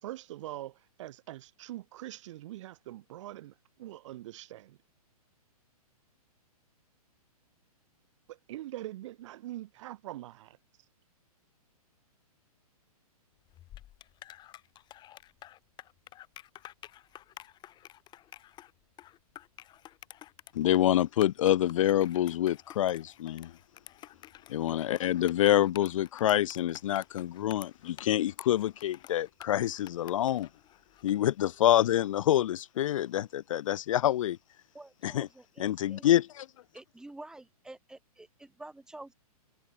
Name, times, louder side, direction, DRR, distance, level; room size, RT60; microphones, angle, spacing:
voice 1, 0.0-4.8 8.3-10.6, right 15 dB, 50° right, 3.5 m, -43 dB
sound 1, 13.5-31.2, left 13 dB, 20° left, 1.5 m, -51 dB
voice 2, 20.5-23.5 24.5-30.5 31.0-34.4 35.0-35.3 35.6-36.5, left 12 dB, 60° left, 0.4 m, -27 dB
voice 3, 34.7-36.1 36.7-39.1, right 2 dB, 5° right, 2.0 m, -49 dB
hypercardioid pair, 125°, 20 cm